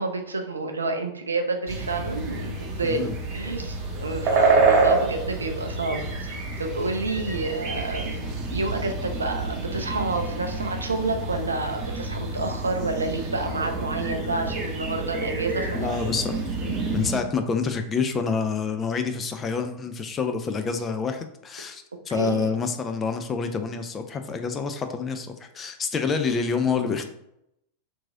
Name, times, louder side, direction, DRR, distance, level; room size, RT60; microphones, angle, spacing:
voice 1, 0.0-16.1 22.1-22.5, right 3 dB, 75° right, 5 dB, 0.4 m, -29 dB
sound 1, 1.7-17.2, right 3 dB, 35° right, 0.7 m, -28 dB
voice 2, 2.8-3.1 15.7-16.4 16.9-25.3 25.5-27.1, left 5 dB, 25° left, 7 dB, 0.4 m, -27 dB
3.0 x 2.6 x 3.6 m, 0.80 s
figure-of-eight pair, 90°, 0 cm